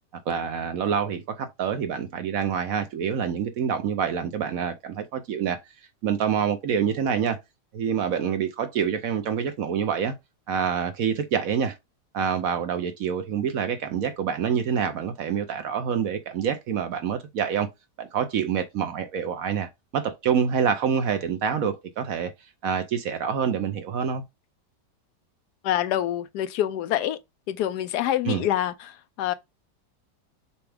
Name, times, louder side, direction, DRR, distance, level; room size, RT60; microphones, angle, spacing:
voice 1, 0.3-5.6 6.0-7.4 7.7-10.1 10.5-11.8 12.1-17.7 18.0-22.3 22.6-24.2 28.2-28.4, right 7 dB, 65° right, 1.0 m, -26 dB
voice 2, 25.6-27.2 27.5-29.3, left 12 dB, 75° left, 1.1 m, -26 dB
6.9 x 2.3 x 3.3 m
omnidirectional pair, 1.8 m